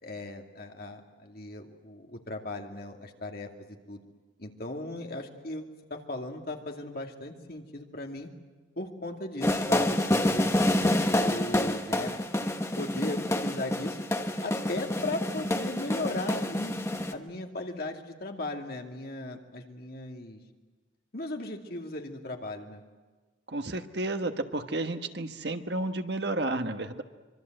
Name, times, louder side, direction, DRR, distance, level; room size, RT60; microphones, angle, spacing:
voice 1, 0.0-4.0 4.4-5.6 5.9-8.3 8.8-10.5 11.1-12.1 12.8-14.0 14.4-16.7 17.1-20.4 21.1-22.8, left 2 dB, 50° left, 2 dB, 2.4 m, -37 dB
sound 1, 9.4-17.1, left 1 dB, 15° left, 1.1 m, -28 dB
voice 2, 23.5-27.0, right 2 dB, 60° right, 7 dB, 1.4 m, -31 dB
25.5 x 24.0 x 7.9 m, 1.3 s
head